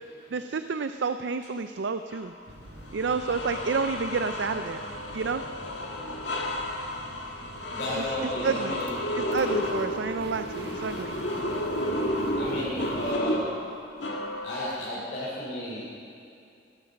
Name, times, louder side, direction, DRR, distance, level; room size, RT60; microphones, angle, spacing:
voice 1, 0.3-2.3 2.9-4.8 5.1-5.4 8.0-8.1 8.4-8.8 9.3-11.1, right 5 dB, 85° right, 9 dB, 0.5 m, -29 dB
sound 1, 2.1-2.3 2.9-14.8, left 1 dB, 85° left, 2.1 m, -32 dB
sound 2, 2.5-13.1, right 1 dB, 65° right, 1.3 m, -46 dB
voice 2, 7.7-8.9 12.3-13.7 14.4-15.8, left 1 dB, 55° left, -8 dB, 3.9 m, -33 dB
17.5 x 12.5 x 6.4 m, 2.5 s
head